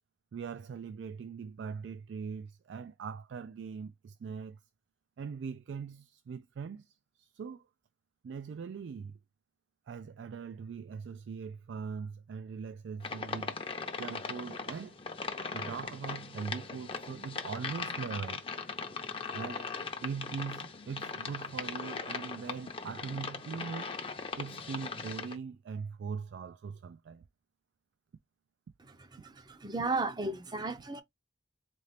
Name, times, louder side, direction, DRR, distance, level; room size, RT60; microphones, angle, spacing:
voice 1, 0.3-4.6 5.2-7.6 8.2-9.2 9.9-13.5 14.0-15.0 15.5-18.5 19.3-19.7 20.0-24.0 24.4-27.2, right 6 dB, 75° right, 0.3 m, -41 dB
sound 1, 13.0-25.4, left 4 dB, 30° left, 0.6 m, -39 dB
voice 2, 29.1-31.0, right 3 dB, 20° right, 0.5 m, -34 dB
4.2 x 2.4 x 3.3 m
head